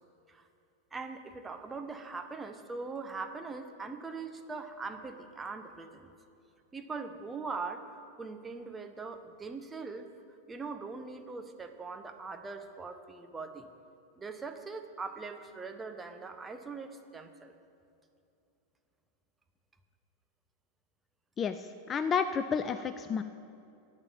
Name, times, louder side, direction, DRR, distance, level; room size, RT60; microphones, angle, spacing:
voice 1, 0.9-6.1 6.7-10.1 10.5-13.7 14.2-17.5, right 4 dB, 15° right, 6 dB, 1.0 m, -41 dB
voice 2, 21.4-23.2, left 6 dB, 25° left, 10 dB, 0.4 m, -31 dB
10.5 x 8.6 x 9.0 m, 2.7 s
figure-of-eight pair, 90°, 0 cm